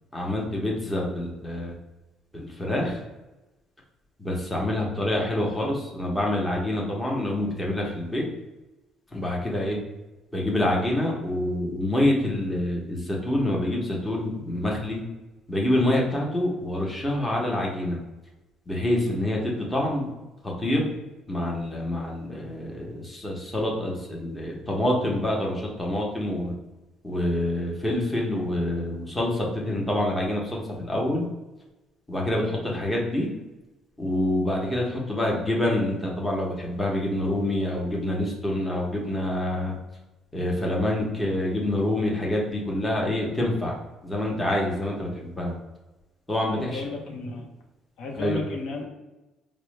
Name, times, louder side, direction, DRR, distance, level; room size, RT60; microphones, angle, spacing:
voice 1, 0.1-1.7 2.3-3.0 4.2-8.2 9.1-9.8 10.3-15.0 15.5-18.0 18.7-20.1 20.4-20.9 21.3-26.5 27.0-31.3 32.1-33.3 34.0-39.7 40.3-43.7 44.0-45.5 46.3-46.8 48.2-48.4, left 1 dB, 10° left, -2 dB, 0.8 m, -26 dB
voice 2, 46.4-47.4 48.0-48.9, left 3 dB, 75° left, 0 dB, 0.7 m, -33 dB
4.4 x 2.0 x 3.1 m, 1.1 s
cardioid pair, 130°, 0 cm